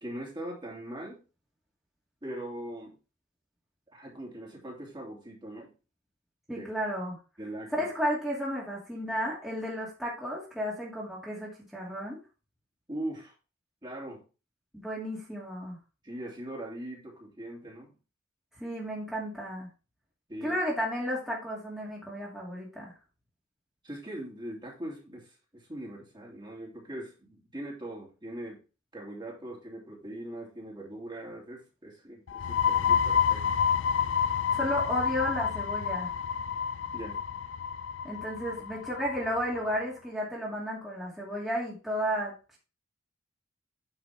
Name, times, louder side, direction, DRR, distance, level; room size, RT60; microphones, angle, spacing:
voice 1, 0.0-1.2 2.2-3.0 3.9-5.7 6.5-6.7 7.4-7.9 12.9-13.3 13.8-14.2 16.0-17.9 20.3-20.6 23.8-28.6 28.9-33.4 36.9-37.2, right 1 dB, 25° right, -3 dB, 3.0 m, -41 dB
voice 2, 6.5-7.2 7.7-12.2 14.7-15.8 18.6-19.7 20.4-22.9 34.5-36.1 38.0-42.6, equal, ahead, -6 dB, 2.4 m, -33 dB
sound 1, 32.3-39.7, left 7 dB, 65° left, 0.5 m, -29 dB
9.0 x 5.9 x 3.5 m, 0.32 s
head